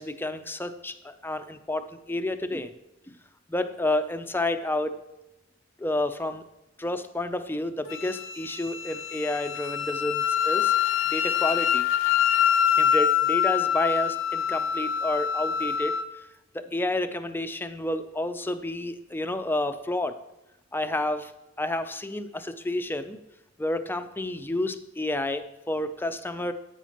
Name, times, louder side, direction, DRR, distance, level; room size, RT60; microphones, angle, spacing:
voice 1, 0.0-2.8 3.1-3.2 3.5-5.0 5.8-6.4 6.8-10.7 11.1-11.9 12.8-16.0 16.5-20.2 20.7-21.3 21.6-23.2 23.6-26.5, left 1 dB, 10° left, 9 dB, 0.5 m, -30 dB
Wind instrument woodwind instrument, 7.9-16.1, left 9 dB, 65° left, 0.6 m, -25 dB
9.9 x 9.1 x 3.0 m, 0.93 s
head